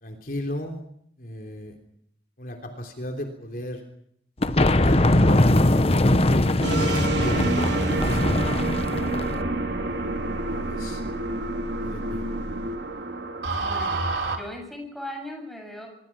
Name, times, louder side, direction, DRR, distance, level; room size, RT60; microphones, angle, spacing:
voice 1, 0.0-0.8 1.2-1.7 2.4-3.8 4.4-7.4 8.0-8.3 10.5-11.0 11.8-12.2, equal, 55° left, 3 dB, 3.4 m, -34 dB
sound 1, 4.4-9.4, left 1 dB, 35° left, 1.0 m, -21 dB
sound 2, 6.6-14.4, right 2 dB, 85° right, 3.7 m, -27 dB
voice 2, 13.6-15.9, left 1 dB, ahead, 2 dB, 7.5 m, -38 dB
25.0 x 24.0 x 6.0 m, 0.68 s
head